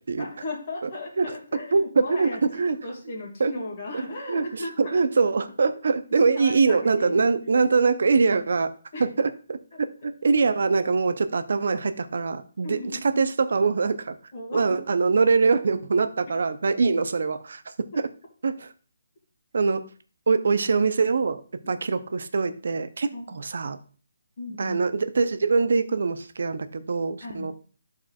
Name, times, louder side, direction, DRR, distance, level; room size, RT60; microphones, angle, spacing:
voice 1, 0.2-2.4 2.8-5.3 6.2-7.3 8.9-9.1 12.6-13.2 14.3-14.9 16.7-16.8 21.6-21.7 23.1-23.4 24.4-24.8 27.2-27.5, left 2 dB, 35° left, -3 dB, 1.9 m, -36 dB
voice 2, 2.2-2.8 3.4-3.5 3.9-4.0 4.3-8.7 9.0-9.6 10.2-12.8 13.0-14.2 14.5-17.6 18.0-18.1 18.4-18.7 19.5-19.8 20.3-23.8 24.6-27.5, right 4 dB, 60° right, 11 dB, 0.6 m, -23 dB
12.5 x 4.3 x 2.4 m, 0.39 s
hypercardioid pair, 170°, 0 cm